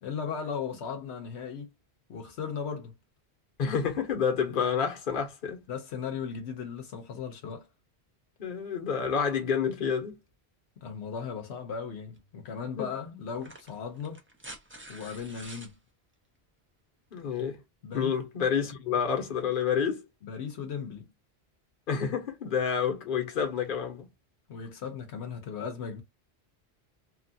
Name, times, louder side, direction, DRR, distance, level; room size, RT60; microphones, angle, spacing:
voice 1, 0.0-1.7 2.1-2.9 5.7-7.7 10.8-14.2 14.9-15.8 17.8-18.1 20.2-21.1 24.5-26.0, left 6 dB, 80° left, 1.0 m, -37 dB
voice 2, 3.6-5.6 8.4-10.2 12.8-12.9 17.1-17.6 17.9-20.0 21.9-24.1, left 7 dB, 55° left, 1.0 m, -29 dB
sound 1, 12.1-12.3 13.3-15.7 17.2-17.3, right 1 dB, 15° right, 0.6 m, -47 dB
3.0 x 2.4 x 2.6 m
omnidirectional pair, 1.1 m